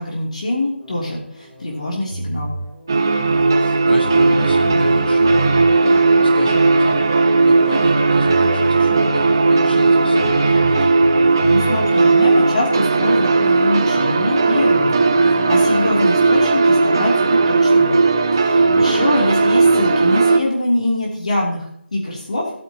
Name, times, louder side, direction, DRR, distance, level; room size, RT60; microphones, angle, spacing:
voice 1, 0.0-2.5 11.5-17.9 18.3-22.5, left 1 dB, 35° left, -3 dB, 3.1 m, -23 dB
sound 1, 0.8-14.8, left 1 dB, 5° left, 0.9 m, -38 dB
sound 2, 2.1-2.7 3.7-3.8 4.0-5.7 7.9-8.0 8.2-9.4 10.2-11.9, right 1 dB, 70° right, 2.8 m, -29 dB
sound 3, 2.9-20.4, right 3 dB, 20° right, 0.6 m, -15 dB
voice 2, 3.2-7.1 7.4-10.9 18.6-19.1, left 2 dB, 55° left, 4 dB, 1.4 m, -31 dB
19.0 x 9.4 x 2.9 m, 0.69 s
figure-of-eight pair, 175°, 6 cm